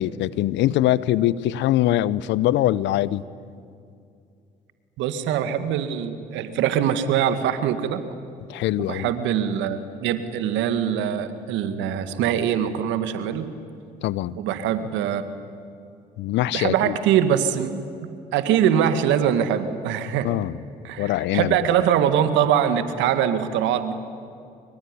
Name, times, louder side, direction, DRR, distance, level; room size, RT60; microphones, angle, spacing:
voice 1, 0.0-3.2 8.5-9.1 14.0-14.3 16.2-17.0 20.2-20.6 21.0-21.5, left 14 dB, 70° left, 20 dB, 0.8 m, -22 dB
voice 2, 5.0-8.0 8.9-13.5 14.4-15.2 16.5-17.8 18.3-20.3 20.8-23.9, right 9 dB, 75° right, 10 dB, 2.0 m, -23 dB
25.0 x 23.5 x 10.0 m, 2.4 s
hypercardioid pair, 55°, 19 cm